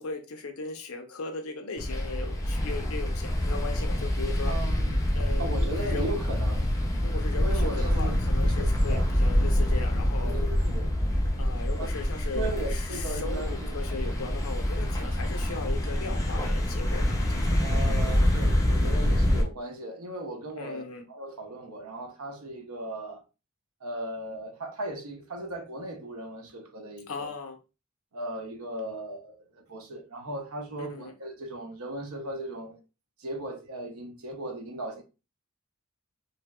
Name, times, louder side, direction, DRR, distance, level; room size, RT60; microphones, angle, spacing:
voice 1, 0.0-4.6 5.1-6.1 7.0-10.3 11.4-17.0 17.3-17.6 20.6-21.0 27.1-27.6 30.8-31.1, left 3 dB, 80° left, 0.6 m, -37 dB
sound 1, 1.8-19.4, left 1 dB, 15° left, 0.5 m, -26 dB
voice 2, 4.5-6.7 7.3-8.2 8.4-9.0 10.2-10.9 11.8-11.9 12.3-13.8 17.6-23.2 23.8-27.3 28.1-32.8 33.2-35.0, right 1 dB, 90° right, 0.7 m, -37 dB
3.3 x 2.9 x 2.2 m
head